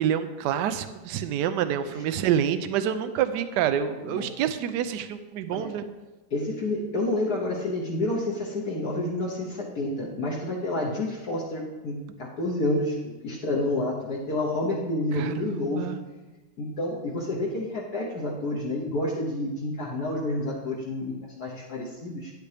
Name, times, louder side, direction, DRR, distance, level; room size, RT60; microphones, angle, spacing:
voice 1, 0.0-5.8 15.1-16.0, right 9 dB, 75° right, 11 dB, 1.1 m, -27 dB
voice 2, 6.3-15.9 16.6-22.3, left 2 dB, 55° left, -3 dB, 1.5 m, -29 dB
10.0 x 8.2 x 3.4 m, 1.1 s
omnidirectional pair, 2.1 m